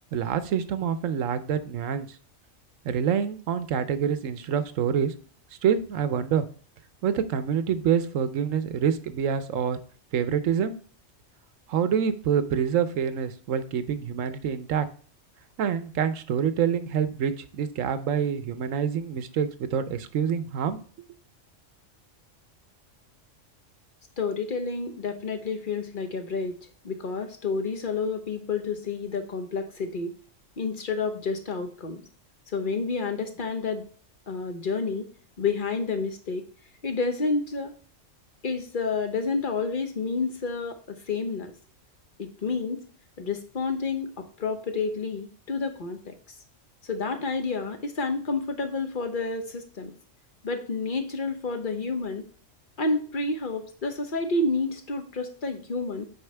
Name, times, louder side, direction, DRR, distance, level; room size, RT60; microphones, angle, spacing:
voice 1, 0.1-2.1 2.8-5.1 5.6-6.5 7.0-9.8 10.1-10.8 11.7-14.9 15.6-20.8, right 8 dB, 85° right, 12 dB, 1.1 m, -26 dB
voice 2, 24.2-26.6 26.8-30.1 30.6-32.0 32.5-33.9 34.3-35.1 35.4-36.5 36.8-37.7 38.4-41.5 42.2-42.8 43.2-46.1 46.8-50.0 50.4-52.2 52.8-56.1, left 4 dB, 45° left, 6 dB, 1.1 m, -29 dB
8.0 x 5.3 x 3.3 m, 0.43 s
omnidirectional pair, 1.3 m